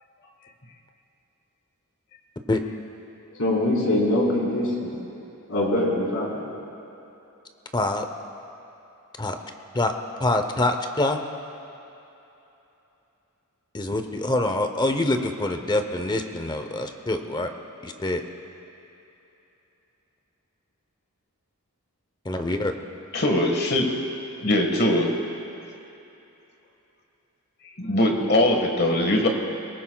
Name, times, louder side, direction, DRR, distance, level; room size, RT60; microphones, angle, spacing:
voice 1, 3.4-4.9 5.5-6.4, left 1 dB, 65° left, -4 dB, 4.1 m, -23 dB
voice 2, 7.7-8.1 9.2-9.4 9.7-9.9 10.2-11.2 13.7-17.5 17.8-18.2 22.2-22.7, left 2 dB, 20° left, 6 dB, 0.8 m, -25 dB
voice 3, 23.1-23.9 24.4-25.1 27.8-29.3, left 1 dB, 45° left, 2 dB, 1.6 m, -21 dB
22.5 x 19.0 x 2.3 m, 2.9 s
head